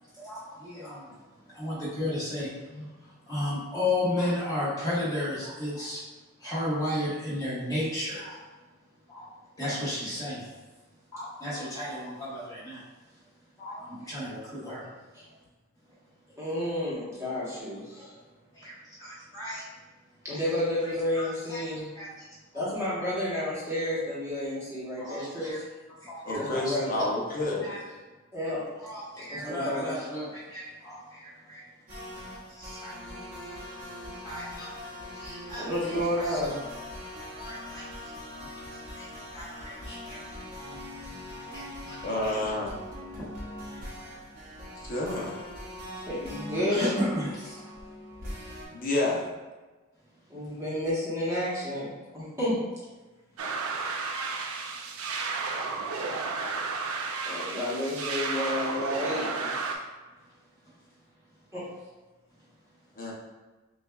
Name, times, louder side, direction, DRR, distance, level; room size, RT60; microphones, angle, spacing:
voice 1, 0.1-1.2 1.4-2.5 3.0-6.0 6.4-8.4 9.1-9.3 9.6-10.5 11.1-12.8 13.6-14.9 15.1-15.2 18.0-18.1 18.5-19.6 20.3-20.4 21.2-21.6 21.9-22.3 22.5-22.6 25.0-25.6 26.0-26.8 27.6-27.8 28.8-31.6 32.3-32.9 33.4-33.6 34.1-34.7 35.1-36.5 37.4-38.1 38.7-39.1 39.3-39.7 40.0-40.2 41.5-42.0 46.7-47.6, left 1 dB, 15° left, -10 dB, 1.2 m, -34 dB
voice 2, 16.4-18.1 20.2-21.9 22.5-25.6 26.3-27.0 28.3-28.6 29.3-29.9 35.6-36.6 39.8-39.9 40.7-40.8 46.1-46.9 50.3-52.6 57.2-59.7 61.5-61.6, left 1 dB, 15° right, -9 dB, 1.0 m, -31 dB
voice 3, 26.2-27.7 42.0-42.8 44.7-45.4 48.7-49.3 63.0-63.1, left 2 dB, 40° left, -3 dB, 0.7 m, -29 dB
sound 1, 31.9-48.7, left 1 dB, 40° right, 0.8 m, -42 dB
sound 2, 53.4-59.8, right 4 dB, 80° right, 0.4 m, -32 dB
6.2 x 2.3 x 2.3 m, 1.2 s
head